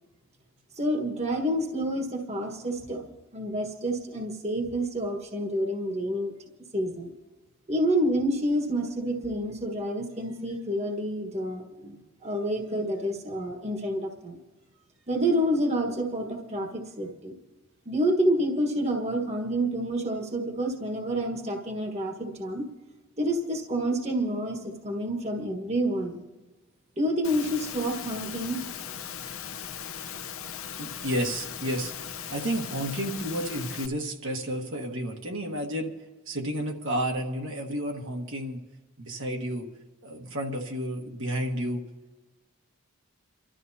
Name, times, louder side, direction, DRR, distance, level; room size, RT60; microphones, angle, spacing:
voice 1, 0.8-6.3 6.7-7.1 7.7-14.4 15.1-17.3 17.8-22.7 23.2-26.2 27.0-28.6, equal, 30° right, 2 dB, 1.4 m, -28 dB
Engine / Mechanisms, 27.2-33.9, left 8 dB, 70° left, 0.8 m, -38 dB
voice 2, 30.8-35.9 36.3-38.6 39.0-39.7 40.0-41.8, equal, 60° right, 1 dB, 1.5 m, -31 dB
29.5 x 12.5 x 2.8 m, 1.1 s
head